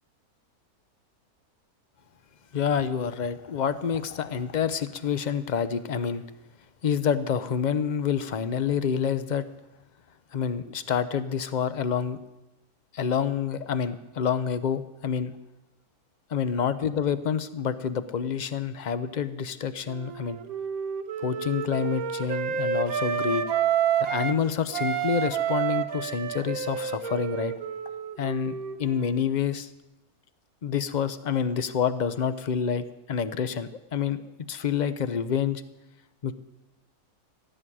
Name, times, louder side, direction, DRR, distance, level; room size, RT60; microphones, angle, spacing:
voice 1, 2.5-6.2 6.8-9.4 10.3-12.2 12.9-15.3 16.3-20.4 21.2-23.4 24.0-27.5 28.2-29.7 30.6-34.2 34.5-35.6 36.2-36.3, left 7 dB, 45° left, 13 dB, 0.6 m, -28 dB
Wind instrument woodwind instrument, 19.9-24.4 24.7-29.2, right 8 dB, 70° right, 1.3 m, -29 dB
15.5 x 7.8 x 10.0 m, 0.99 s
omnidirectional pair, 1.6 m